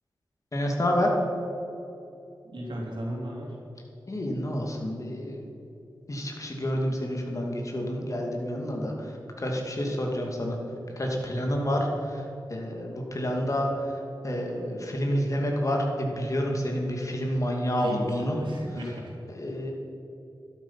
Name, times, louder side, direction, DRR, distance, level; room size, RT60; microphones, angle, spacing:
voice 1, 0.5-1.1 4.1-5.5 6.1-9.1 9.4-10.6 11.0-12.2 12.5-13.7 14.2-18.4 19.3-19.7, equal, 40° left, 0 dB, 2.5 m, -29 dB
voice 2, 2.4-3.6 11.3-11.5 17.8-19.1, equal, 85° right, -2 dB, 3.0 m, -36 dB
12.5 x 12.0 x 5.8 m, 2.9 s
wide cardioid pair, 95°, 8 cm